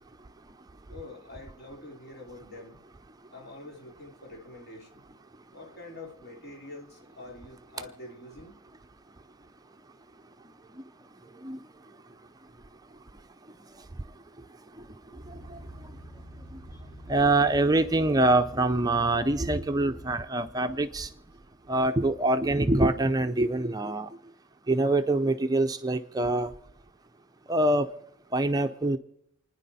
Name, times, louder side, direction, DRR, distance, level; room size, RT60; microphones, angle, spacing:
voice 1, 0.9-2.8 3.3-5.2 5.5-8.6 16.7-16.8, left 2 dB, 50° left, 1 dB, 2.9 m, -46 dB
sound 1, 15.1-20.2, equal, 15° left, 3.4 m, -46 dB
voice 2, 15.3-15.6 17.1-21.1 21.7-24.1 24.7-26.5 27.5-27.9 28.3-29.0, right 2 dB, 20° right, 8 dB, 0.5 m, -25 dB
29.0 x 10.0 x 4.1 m, 0.75 s
head